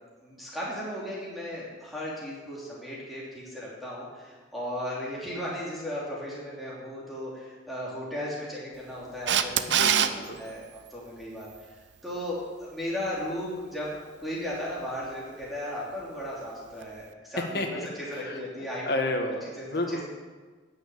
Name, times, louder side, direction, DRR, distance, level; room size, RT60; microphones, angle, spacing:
voice 1, 0.2-10.1 10.4-10.6 10.9-11.7 12.0-18.8 19.9-20.0, equal, ahead, -7 dB, 3.1 m, -36 dB
Camera, 9.3-10.1 16.8-16.9, right 9 dB, 75° right, 0.6 m, -22 dB
voice 2, 9.7-10.4 17.5-18.4 18.9-20.0, left 1 dB, 55° left, 4 dB, 1.5 m, -31 dB
11.5 x 6.5 x 8.5 m, 1.4 s
head